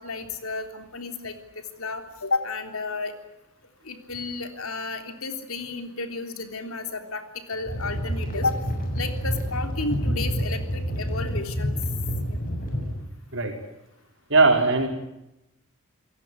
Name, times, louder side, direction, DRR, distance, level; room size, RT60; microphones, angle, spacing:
voice 1, 0.0-1.4 1.8-3.1 3.9-7.2 7.5-8.6 8.9-11.7 12.3-12.4, left 3 dB, 70° left, 7 dB, 3.5 m, -32 dB
sound 1, 7.7-12.9, equal, 40° left, 7.4 m, -28 dB
voice 2, 14.3-14.9, right 3 dB, 55° right, 4 dB, 5.0 m, -19 dB
28.5 x 18.0 x 9.9 m, 0.88 s
head